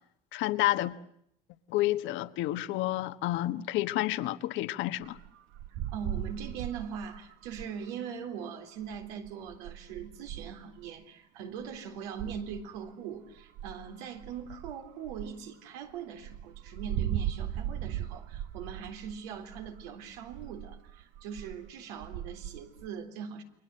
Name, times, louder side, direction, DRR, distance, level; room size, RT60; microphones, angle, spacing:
voice 1, 0.3-0.9 1.7-5.2, left 16 dB, 65° left, 1.4 m, -30 dB
sound 1, 5.0-7.8 8.8-11.0 11.6-11.8 12.2-12.9 13.4-14.7 15.1-15.3 15.9-16.0 16.2-21.7 22.0-22.9, right 11 dB, 65° right, 1.2 m, -38 dB
voice 2, 5.9-23.4, right 7 dB, 85° right, 3.8 m, -41 dB
29.5 x 22.5 x 7.7 m
supercardioid pair, 115°, 21 cm